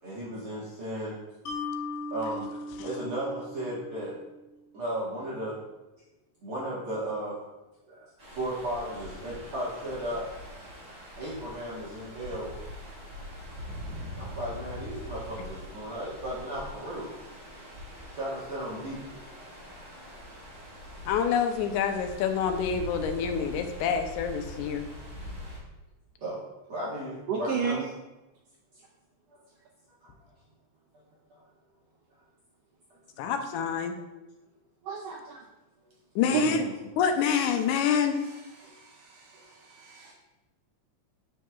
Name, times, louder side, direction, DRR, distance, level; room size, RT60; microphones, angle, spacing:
voice 1, 0.0-1.2 2.1-4.2 4.7-5.6 6.4-7.4 7.9-8.1 8.4-10.3 11.2-12.5 13.6-13.7 14.1-17.1 18.1-19.2 26.2-26.4 26.7-27.9 31.3-31.4 36.3-36.7 39.3-39.5, right 1 dB, 55° right, -8 dB, 2.0 m, -35 dB
Mallet percussion, 1.5-4.7, left 2 dB, 65° left, 1.8 m, -38 dB
sound 1, 8.2-25.6, left 1 dB, 25° right, 2.1 m, -43 dB
voice 2, 21.1-24.8 33.2-33.9 36.2-36.6 37.0-38.2, left 7 dB, 90° left, 6 dB, 2.1 m, -27 dB
voice 3, 27.3-27.8 34.9-35.4 36.3-36.4 38.6-38.7 39.1-39.2 39.7-40.1, right 7 dB, 80° right, 0 dB, 1.4 m, -31 dB
7.5 x 6.4 x 2.3 m, 1.0 s
omnidirectional pair, 3.4 m